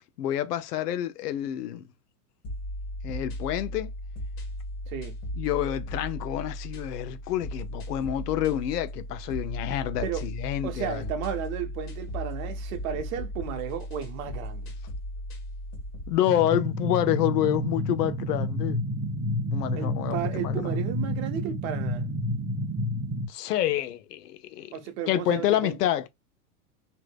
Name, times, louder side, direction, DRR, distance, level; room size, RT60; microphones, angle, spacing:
voice 1, 0.2-1.9 3.0-3.9 5.4-11.0 16.1-18.8 19.5-20.6 23.3-24.7 25.1-26.1, left 12 dB, 75° left, 0.7 m, -28 dB
sound 1, 2.4-16.2, equal, 35° left, 1.5 m, -36 dB
voice 2, 10.6-14.7 19.8-22.1 24.7-25.8, right 8 dB, 60° right, 1.0 m, -34 dB
sound 2, 16.3-23.3, equal, 15° right, 0.7 m, -29 dB
3.4 x 2.8 x 2.2 m
hypercardioid pair, 105°, 47 cm